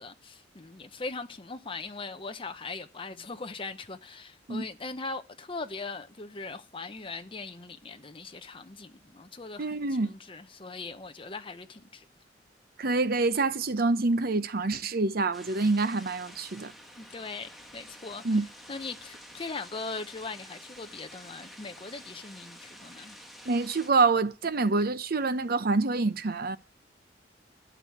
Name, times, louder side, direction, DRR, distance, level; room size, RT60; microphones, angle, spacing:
voice 1, 0.0-12.0 17.0-18.2 18.7-23.2, left 3 dB, 30° left, 0.9 m, -40 dB
voice 2, 9.6-10.1 12.8-16.7 18.2-18.5 23.5-26.6, right 3 dB, 55° right, 0.8 m, -26 dB
sound 1, 15.3-23.9, equal, ahead, 1.7 m, -49 dB
13.0 x 6.4 x 9.7 m
head